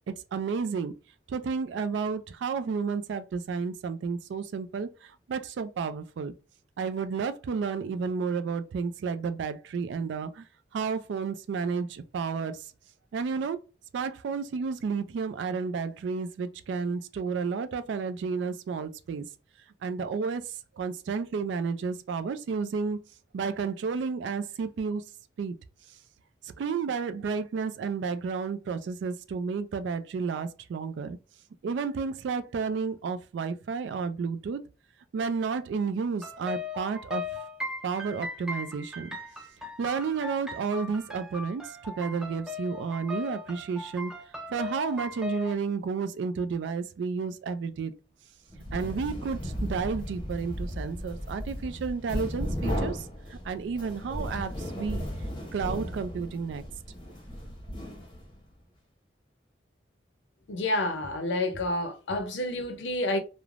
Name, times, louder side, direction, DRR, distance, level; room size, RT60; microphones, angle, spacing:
voice 1, 0.1-0.9 1.3-6.3 6.8-10.5 10.7-12.6 13.1-13.6 13.9-19.3 19.8-23.0 23.3-25.0 25.4-25.6 26.4-31.2 31.6-34.6 35.1-37.3 37.8-39.1 39.8-44.1 44.5-47.9 48.7-55.0 55.5-56.6, right 5 dB, 80° right, 0.3 m, -31 dB
sound 1, 36.2-45.6, left 3 dB, 5° right, 0.4 m, -38 dB
sound 2, 48.5-58.4, equal, 25° left, 0.7 m, -35 dB
voice 2, 60.5-63.2, left 1 dB, 85° left, 0.6 m, -29 dB
3.1 x 2.0 x 2.4 m
head